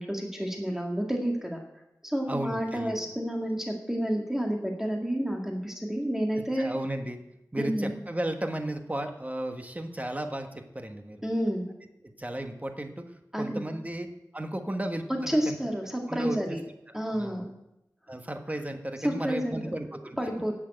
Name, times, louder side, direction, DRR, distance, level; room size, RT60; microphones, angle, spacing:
voice 1, 0.0-1.6 2.0-6.8 7.6-7.9 11.2-11.7 13.3-13.6 15.3-16.6 16.9-17.5 19.0-19.7 20.2-20.5, equal, 5° right, 1 dB, 1.9 m, -30 dB
voice 2, 2.3-3.0 6.4-7.2 7.5-11.2 12.0-13.0 13.4-14.1 14.3-15.6 16.1-16.4 16.9-17.5 18.1-20.2, right 1 dB, 20° right, 6 dB, 1.3 m, -34 dB
11.0 x 7.5 x 8.9 m, 0.87 s
wide cardioid pair, 75°, 7 cm